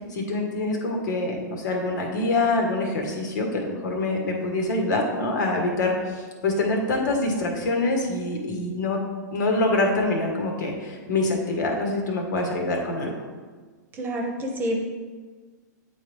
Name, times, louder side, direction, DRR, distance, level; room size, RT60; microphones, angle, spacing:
voice 1, 0.1-9.0 9.3-13.1, left 2 dB, 70° left, 1 dB, 1.5 m, -25 dB
voice 2, 13.9-14.8, equal, 20° right, 1 dB, 1.0 m, -28 dB
8.6 x 3.8 x 3.5 m, 1.5 s
hypercardioid pair, 130°, 10 cm